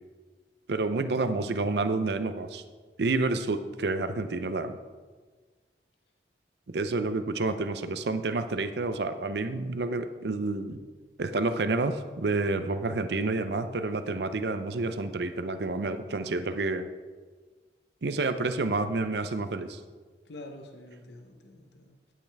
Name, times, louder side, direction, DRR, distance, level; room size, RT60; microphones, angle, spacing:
voice 1, 0.7-2.6 3.0-4.8 6.7-10.8 11.2-16.9 18.0-19.8, right 3 dB, 70° right, 10 dB, 0.6 m, -29 dB
voice 2, 20.2-22.1, left 1 dB, 80° left, 4 dB, 0.9 m, -47 dB
11.5 x 8.8 x 3.5 m, 1.4 s
head